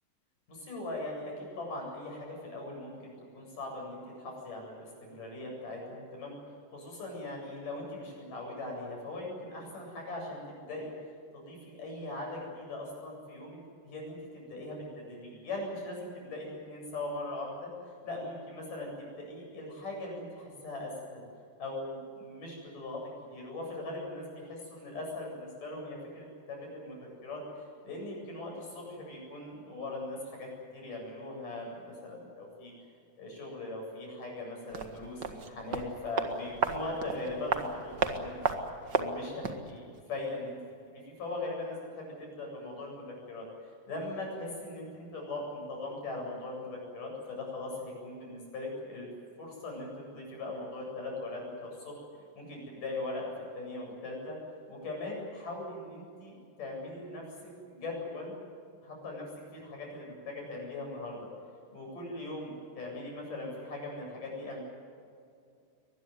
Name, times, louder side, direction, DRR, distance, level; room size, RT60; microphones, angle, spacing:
voice 1, 0.5-6.4 6.7-10.9 11.3-17.7 18.0-21.2 21.6-23.0 23.3-32.7 33.2-38.6 38.9-39.8 40.1-40.6 40.9-49.1 49.4-54.4 54.7-58.3 58.8-59.3 59.5-61.3 61.7-64.6, left 2 dB, 65° left, 0 dB, 9.7 m, -40 dB
sound 1, 34.7-39.7 39.9-40.0, right 5 dB, 40° right, 1.7 m, -33 dB
23.5 x 20.5 x 9.6 m, 2.4 s
omnidirectional pair, 4.0 m